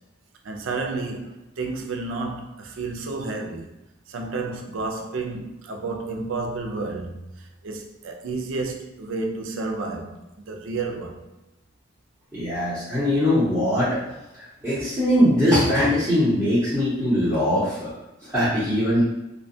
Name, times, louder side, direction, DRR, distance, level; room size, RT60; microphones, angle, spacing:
voice 1, 0.4-3.7 4.1-10.2 10.5-11.2, right 3 dB, 75° right, 0.4 m, -31 dB
voice 2, 12.3-14.0 14.6-17.9 18.3-19.0, equal, 5° right, 0.8 m, -21 dB
2.5 x 2.2 x 2.6 m
head